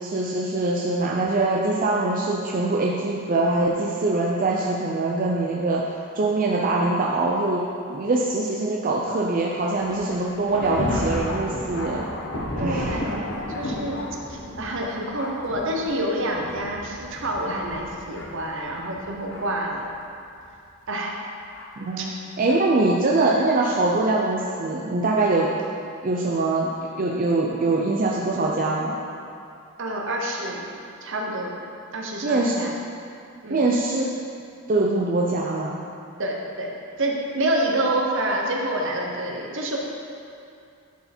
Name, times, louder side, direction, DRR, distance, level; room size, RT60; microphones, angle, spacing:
voice 1, 0.0-5.8 6.2-7.6 7.9-12.0 12.6-12.9 21.8-25.5 26.0-26.7 27.0-28.9 32.2-32.7 33.5-34.0 34.7-35.8, right 2 dB, 40° right, -3 dB, 0.5 m, -23 dB
Thunder, 9.7-19.7 20.4-20.5 21.5-21.7 22.5-22.6, left 1 dB, 60° left, 1.0 m, -33 dB
voice 2, 12.6-14.0 14.3-19.9 20.9-21.1 22.0-22.1 29.8-30.6 31.0-31.5 31.9-32.7 33.4-33.6 36.2-36.7 37.0-39.8, right 1 dB, 60° right, -1 dB, 1.0 m, -27 dB
10.0 x 4.6 x 4.3 m, 2.5 s
head